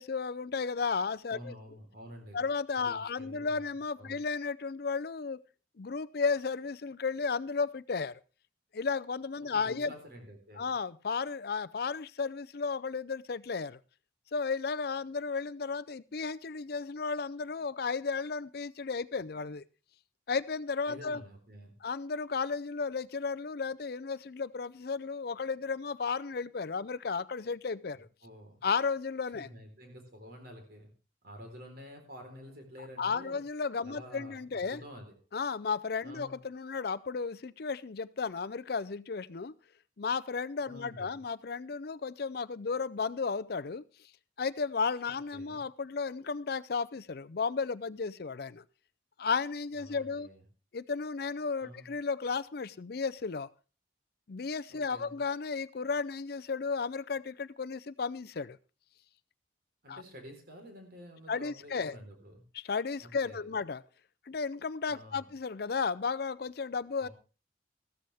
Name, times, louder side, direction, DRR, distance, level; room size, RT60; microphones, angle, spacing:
voice 1, 0.0-1.5 2.3-5.4 5.8-8.2 8.7-9.9 10.6-13.8 14.3-19.6 20.3-21.2 21.8-28.1 28.6-29.5 33.0-34.8 35.3-39.5 40.0-43.8 44.4-48.6 49.2-50.3 50.7-53.5 54.3-58.6 59.9-60.0 61.3-62.0 62.5-63.8 64.3-67.1, left 5 dB, 55° left, 0.5 m, -34 dB
voice 2, 1.3-2.4 2.8-3.6 4.0-4.2 9.4-10.7 20.9-21.7 28.2-28.6 29.3-30.9 31.2-33.4 33.8-35.2 36.0-36.4 40.7-41.2 45.3-45.6 49.7-50.4 51.6-51.9 54.7-55.2 59.8-62.4 63.0-63.5 64.9-65.3 67.0-67.1, equal, 55° right, 4.0 m, -49 dB
15.0 x 13.0 x 3.5 m
head